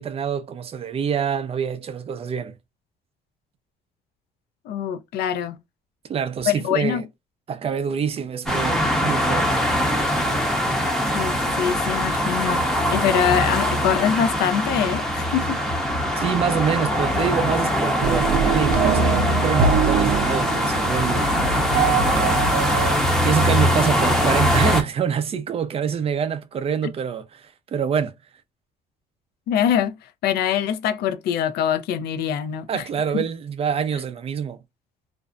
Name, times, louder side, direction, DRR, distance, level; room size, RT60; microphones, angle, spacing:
voice 1, 0.0-2.5 6.1-7.1 7.5-9.6 16.2-21.4 23.2-28.1 32.7-34.6, right 7 dB, 35° right, 0.5 m, -26 dB
voice 2, 4.7-5.6 6.5-7.0 11.1-12.6 12.9-15.6 29.5-30.0 30.2-32.8 33.1-33.2, left 9 dB, 70° left, 0.5 m, -23 dB
sound 1, 8.5-24.8, equal, ahead, 0.7 m, -22 dB
sound 2, 18.0-23.0, right 7 dB, 90° right, 0.4 m, -23 dB
2.5 x 2.0 x 2.3 m
cardioid pair, 110°, 17 cm